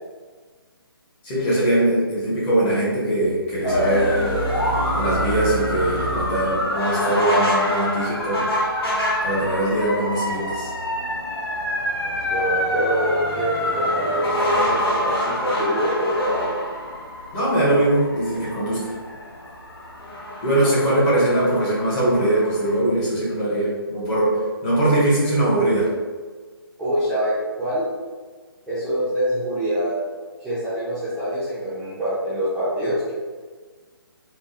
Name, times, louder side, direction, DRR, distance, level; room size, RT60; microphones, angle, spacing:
voice 1, 1.2-4.3 4.9-8.5 9.2-10.7 17.3-18.9 20.4-25.9, right 1 dB, 20° left, -8 dB, 1.0 m, -21 dB
sound 1, 3.6-22.8, left 1 dB, 75° left, 0.9 m, -26 dB
voice 2, 12.3-16.7 26.8-27.9 28.7-29.9 30.4-33.1, equal, ahead, -16 dB, 0.5 m, -25 dB
3.6 x 2.2 x 2.6 m, 1.5 s
figure-of-eight pair, 140°, 13 cm